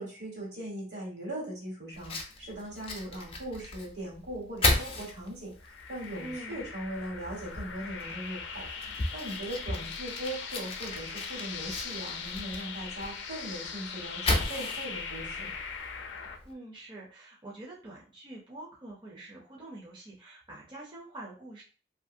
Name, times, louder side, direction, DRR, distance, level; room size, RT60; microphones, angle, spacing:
voice 1, 0.0-15.5, right 1 dB, 70° right, -3 dB, 1.5 m, -39 dB
Fire, 1.9-16.5, left 2 dB, 30° left, 0.5 m, -36 dB
sound 1, 5.6-16.4, left 6 dB, 85° left, 0.4 m, -40 dB
voice 2, 6.2-6.6 16.4-21.6, right 2 dB, 25° right, -4 dB, 0.6 m, -45 dB
2.7 x 2.6 x 2.6 m, 0.38 s
head